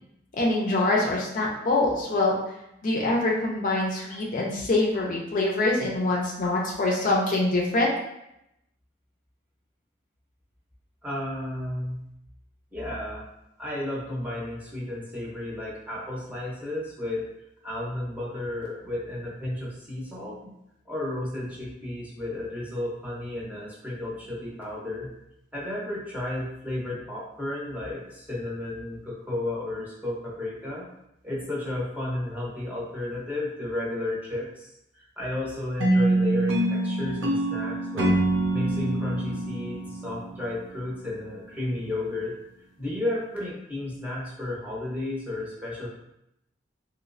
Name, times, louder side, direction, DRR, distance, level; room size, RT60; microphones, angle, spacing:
voice 1, 0.4-2.4 2.8-7.9, left 2 dB, 45° left, -2 dB, 0.5 m, -24 dB
voice 2, 11.0-12.0 12.7-13.2 13.6-17.3 17.6-20.6 20.8-25.1 25.5-30.9 31.2-38.2 38.5-42.3 42.8-45.9, left 1 dB, 10° right, -6 dB, 0.8 m, -33 dB
sound 1, 35.8-40.9, right 1 dB, 85° right, 0.5 m, -25 dB
3.0 x 3.0 x 2.5 m, 0.83 s
head